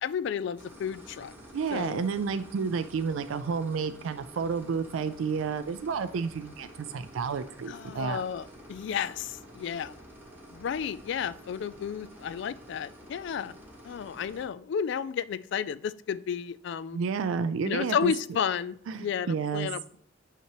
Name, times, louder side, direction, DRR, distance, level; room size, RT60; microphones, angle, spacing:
voice 1, 0.0-1.3 1.7-2.1 7.7-9.9 10.5-13.5 13.8-17.0 17.6-20.0, left 7 dB, 60° left, 18 dB, 0.3 m, -32 dB
sound 1, 0.6-14.4, equal, 10° right, 1.2 m, -50 dB
voice 2, 1.5-8.2 16.9-18.1 18.9-19.7, right 5 dB, 85° right, 11 dB, 0.4 m, -31 dB
5.8 x 5.6 x 2.9 m, 0.62 s
head